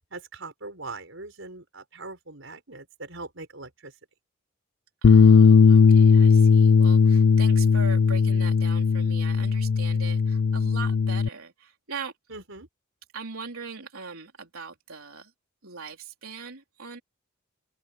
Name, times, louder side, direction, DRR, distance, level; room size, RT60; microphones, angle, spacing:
voice 1, 0.1-3.9 12.3-12.7, right 3 dB, 65° right, 5.3 m, -41 dB
Bass guitar, 5.0-11.3, left 5 dB, 70° left, 0.4 m, -18 dB
voice 2, 5.0-12.1 13.1-15.3 15.6-17.0, right 5 dB, 85° right, 3.7 m, -40 dB
open air
head